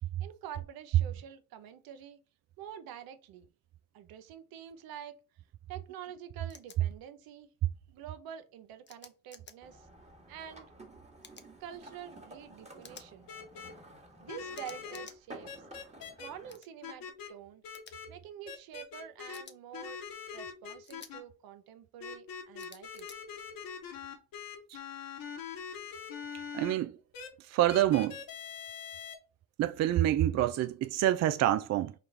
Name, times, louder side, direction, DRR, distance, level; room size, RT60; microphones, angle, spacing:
voice 1, 0.2-2.2 2.6-3.5 3.9-5.2 5.7-7.5 7.9-9.9 10.3-10.7 11.6-13.3 14.2-15.5 16.2-17.6 18.1-20.0 20.3-23.2, right 9 dB, 70° right, 0.8 m, -47 dB
sound 1, 6.5-6.8 8.9-9.5 11.2-11.5 12.8-13.1 14.5-15.2 16.5-16.7 17.7-17.9 19.3-19.6 20.8-21.1 22.6-23.2, left 5 dB, 30° left, 0.7 m, -52 dB
sound 2, 9.6-16.6, right 1 dB, 15° right, 1.5 m, -52 dB
sound 3, 13.3-13.7 14.3-15.1 15.5-16.3 16.8-17.3 17.6-18.1 18.5-19.4 19.7-21.2 22.0-26.7 27.1-27.3 27.7-29.1, left 6 dB, 65° left, 1.3 m, -43 dB
voice 2, 26.5-27.0 27.4-28.2 29.6-31.9, right 12 dB, 45° right, 0.4 m, -27 dB
4.8 x 2.4 x 3.3 m
supercardioid pair, 65°, 38 cm